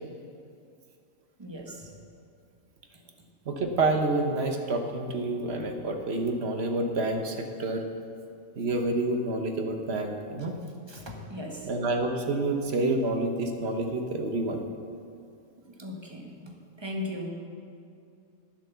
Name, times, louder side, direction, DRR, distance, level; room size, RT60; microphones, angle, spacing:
voice 1, 1.4-2.0 10.9-11.7 15.8-17.3, left 1 dB, 20° right, 1 dB, 1.2 m, -38 dB
voice 2, 3.5-7.8 8.6-10.6 11.6-14.7, right 2 dB, 50° right, 4 dB, 1.2 m, -28 dB
11.5 x 7.6 x 6.8 m, 2.5 s
omnidirectional pair, 1.4 m